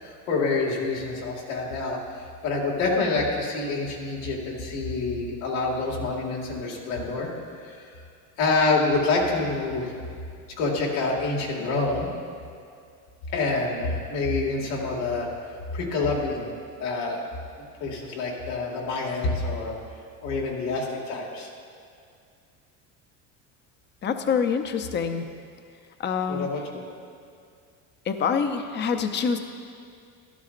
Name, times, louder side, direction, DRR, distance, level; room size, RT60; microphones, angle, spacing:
voice 1, 0.0-7.3 7.6-7.9 8.4-9.9 10.6-12.1 13.3-15.3 15.7-16.5 16.8-17.2 17.8-19.7 20.2-21.5 26.3-26.6, left 3 dB, 90° left, -2 dB, 2.2 m, -27 dB
voice 2, 24.0-25.3 26.0-26.5 28.1-29.4, left 6 dB, 30° left, 7 dB, 0.6 m, -26 dB
12.5 x 12.0 x 2.5 m, 2.3 s
cardioid pair, 125°, 39 cm